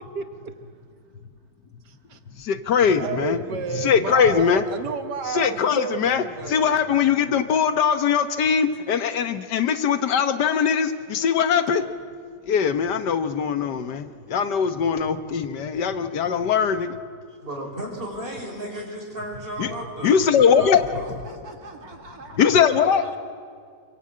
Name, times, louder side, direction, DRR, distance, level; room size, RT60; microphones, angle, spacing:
voice 1, 0.2-0.6 1.9-2.2 2.9-6.8, right 7 dB, 85° right, 8 dB, 1.7 m, -32 dB
voice 2, 2.4-3.4 3.7-4.6 5.3-11.8 12.5-16.9 19.6-19.7 20.0-20.8 21.2-21.3 22.4-23.0, left 7 dB, 90° left, 10 dB, 1.7 m, -21 dB
voice 3, 17.4-21.1, right 1 dB, 30° right, 0 dB, 5.4 m, -34 dB
voice 4, 21.0-23.2, right 3 dB, 60° right, 4 dB, 2.5 m, -44 dB
27.0 x 23.0 x 8.7 m, 2.1 s
omnidirectional pair, 1.8 m